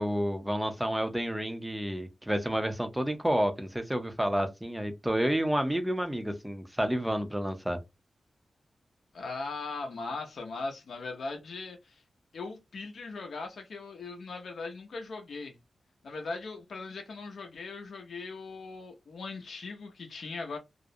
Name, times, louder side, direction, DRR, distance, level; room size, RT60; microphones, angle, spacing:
voice 1, 0.0-7.8, equal, 5° right, 0.5 m, -30 dB
voice 2, 9.1-12.0 12.3-15.6 16.0-20.6, left 3 dB, 75° left, 0.5 m, -39 dB
2.3 x 2.0 x 2.6 m
wide cardioid pair, 105°, 0 cm